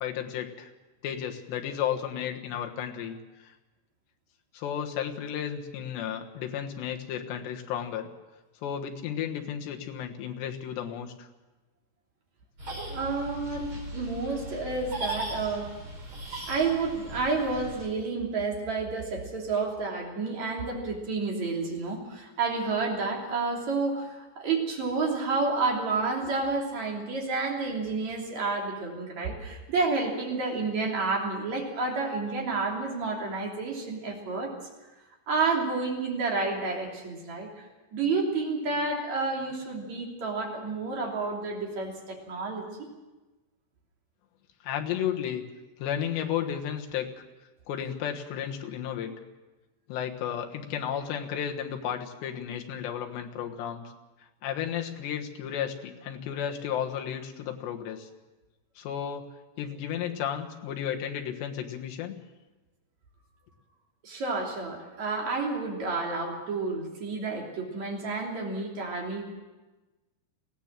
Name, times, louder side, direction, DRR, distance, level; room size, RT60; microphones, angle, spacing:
voice 1, 0.0-0.7 1.0-3.5 4.5-8.1 8.6-11.3 44.6-45.4 45.8-47.1 47.7-49.1 49.9-53.9 54.4-58.1 58.8-59.3 59.6-62.2, left 9 dB, 80° left, 3 dB, 3.6 m, -33 dB
sound 1, 12.6-17.9, right 1 dB, 30° right, 5.2 m, -38 dB
voice 2, 12.9-15.7 16.5-34.5 35.3-42.9 64.0-69.3, right 3 dB, 45° right, -1 dB, 4.1 m, -30 dB
21.0 x 16.5 x 7.5 m, 1.1 s
omnidirectional pair, 4.9 m